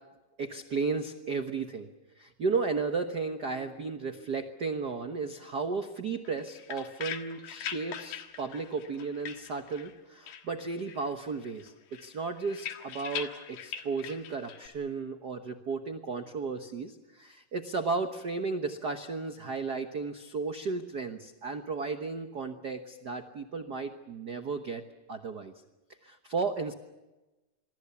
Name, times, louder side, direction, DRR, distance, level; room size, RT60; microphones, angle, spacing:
voice 1, 0.4-1.9 2.2-24.8 25.1-25.5 26.0-26.7, right 4 dB, 75° right, 7 dB, 0.9 m, -34 dB
sound 1, 6.3-10.0 10.3-11.1 11.4-14.7, left 8 dB, 90° left, 3.2 m, -42 dB
27.0 x 22.0 x 7.1 m, 1.0 s
omnidirectional pair, 3.8 m